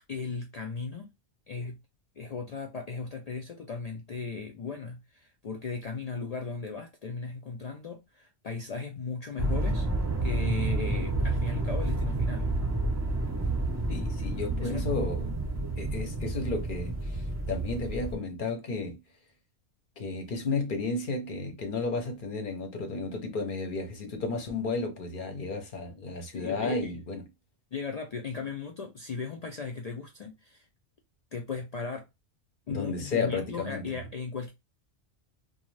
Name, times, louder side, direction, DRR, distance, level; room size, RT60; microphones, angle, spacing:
voice 1, 0.1-1.1 1.5-1.8 2.2-9.9 10.2-12.5 14.6-14.8 26.3-26.9 27.7-30.7 31.3-32.1 32.7-34.5, left 4 dB, 80° left, 0.3 m, -37 dB
sound 1, 9.4-18.1, right 2 dB, 20° right, 0.6 m, -30 dB
voice 2, 13.9-15.3 15.8-19.0 20.0-27.2 32.7-33.8, left 3 dB, 50° left, 0.9 m, -33 dB
2.5 x 2.3 x 3.1 m
omnidirectional pair, 1.2 m